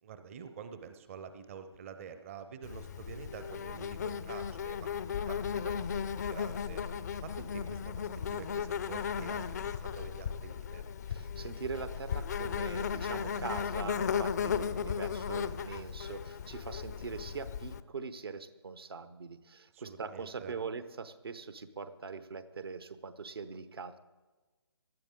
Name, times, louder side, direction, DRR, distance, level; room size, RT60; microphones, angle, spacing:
voice 1, 0.0-6.8 7.2-10.8 19.7-20.5, right 7 dB, 30° right, 9 dB, 0.7 m, -48 dB
Insect, 2.6-17.8, left 7 dB, 40° left, 0.5 m, -36 dB
voice 2, 11.1-24.0, right 5 dB, 60° right, 12 dB, 1.0 m, -42 dB
18.5 x 12.0 x 3.7 m, 1.2 s
figure-of-eight pair, 140°, 14 cm